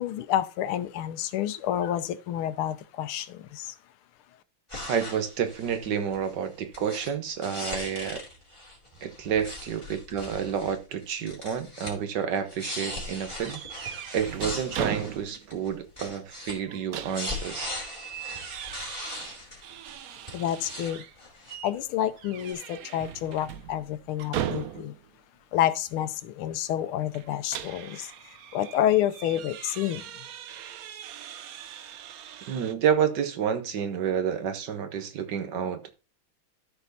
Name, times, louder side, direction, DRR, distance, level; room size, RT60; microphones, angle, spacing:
voice 1, 0.0-3.7 20.3-21.0 21.6-24.9 25.5-30.0, left 11 dB, 85° left, 1.6 m, -29 dB
sound 1, 4.7-6.3 6.7-7.1 7.4-10.8 11.0-11.9 12.2-16.5 16.9-19.9 20.3-20.9 21.2-21.8 22.4-22.5, left 1 dB, 15° left, 2.8 m, -39 dB
voice 2, 4.9-8.2 9.0-13.6 14.1-17.7 32.5-35.9, right 8 dB, 60° right, 1.6 m, -29 dB
sound 2, 13.4-15.6 15.9-16.0 16.5-21.1 21.5-21.8 22.2-25.1 27.1-32.7, right 10 dB, 80° right, 0.8 m, -39 dB
13.0 x 4.5 x 4.1 m
omnidirectional pair, 2.3 m